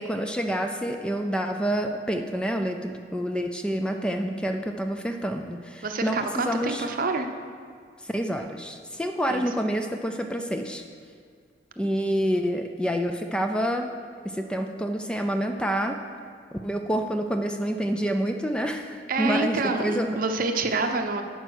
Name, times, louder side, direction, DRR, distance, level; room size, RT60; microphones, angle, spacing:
voice 1, 0.0-6.9 8.0-10.8 11.8-13.9 14.2-16.0 16.5-20.2, equal, 5° left, 5 dB, 0.3 m, -28 dB
voice 2, 5.8-7.3 9.3-9.4 19.1-21.2, right 3 dB, 50° right, 5 dB, 0.6 m, -27 dB
9.1 x 5.5 x 6.0 m, 2.1 s
head